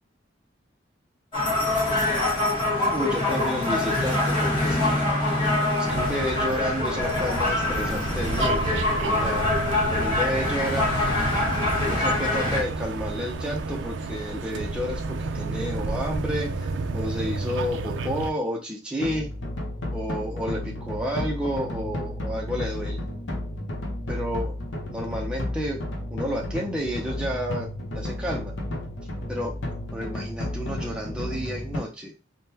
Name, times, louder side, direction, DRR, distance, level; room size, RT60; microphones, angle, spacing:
Siem Reap Streetlife, 1.3-12.6, left 2 dB, 25° left, 1.2 m, -24 dB
voice 1, 2.9-5.1 5.9-9.4 9.9-10.9 11.8-19.3 19.9-23.0 24.1-24.5 24.9-25.9 26.1-27.7 27.9-28.5 29.3-29.5 29.9-32.1, equal, 5° right, -2 dB, 0.4 m, -31 dB
sound 1, 5.9-18.3, right 3 dB, 70° right, 0.4 m, -31 dB
sound 2, 19.0-31.8, left 1 dB, 75° left, 0.8 m, -32 dB
3.6 x 2.1 x 2.7 m, 0.32 s
head